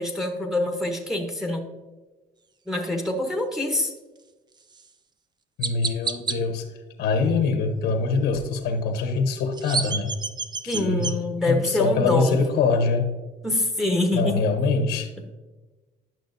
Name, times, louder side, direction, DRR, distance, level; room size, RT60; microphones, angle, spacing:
voice 1, 0.0-1.6 2.7-3.9 10.7-12.4 13.4-14.4, left 1 dB, ahead, 3 dB, 0.9 m, -25 dB
Chirp tweet, 4.7-4.9 5.6-6.4 9.3-11.1, right 4 dB, 25° right, 0.5 m, -29 dB
voice 2, 5.6-6.6 7.0-10.1 10.6-11.1 11.5-13.1 14.1-15.1, left 4 dB, 80° left, 5 dB, 1.0 m, -24 dB
10.5 x 6.1 x 2.6 m, 1.2 s
cardioid pair, 110°, 17 cm